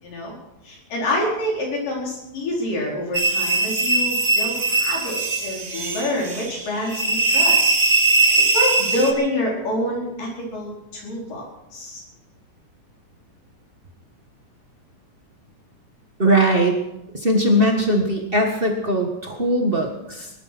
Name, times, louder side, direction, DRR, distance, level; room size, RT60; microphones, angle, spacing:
voice 1, 0.0-0.4 0.6-7.7 8.5-11.4 11.7-12.0, left 1 dB, 75° left, -2 dB, 6.2 m, -27 dB
sound 1, 3.1-9.1, right 3 dB, 30° right, 1.4 m, -20 dB
voice 2, 16.2-16.8 17.1-20.3, right 1 dB, 50° right, 2 dB, 0.6 m, -20 dB
19.5 x 12.5 x 6.0 m, 0.91 s
omnidirectional pair, 3.8 m